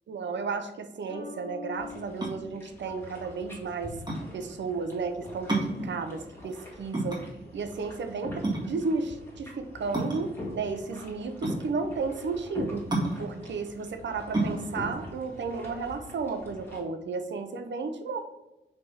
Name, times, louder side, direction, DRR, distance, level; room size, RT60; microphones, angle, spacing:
voice 1, 0.1-3.9 4.3-7.2 7.5-12.8 13.2-18.2, right 4 dB, 85° right, 8 dB, 0.7 m, -33 dB
sound 1, 1.1-3.7, left 5 dB, 40° left, 1.5 m, -46 dB
sound 2, 1.7-16.8, left 1 dB, 10° left, 1.9 m, -44 dB
sound 3, 2.1-16.4, right 2 dB, 25° right, 1.9 m, -33 dB
5.4 x 3.5 x 5.6 m, 0.96 s
wide cardioid pair, 125°, 18 cm